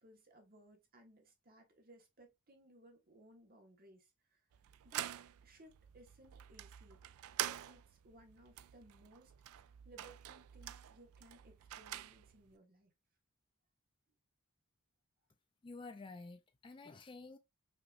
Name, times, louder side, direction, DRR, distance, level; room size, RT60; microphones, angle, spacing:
voice 1, 0.0-4.5 4.8-5.1 5.4-12.9, right 1 dB, 45° right, 1.4 m, -62 dB
sound 1, 4.5-12.5, right 12 dB, 90° right, 0.3 m, -46 dB
voice 2, 15.6-17.4, left 3 dB, 25° left, 0.3 m, -50 dB
5.5 x 3.0 x 2.5 m
head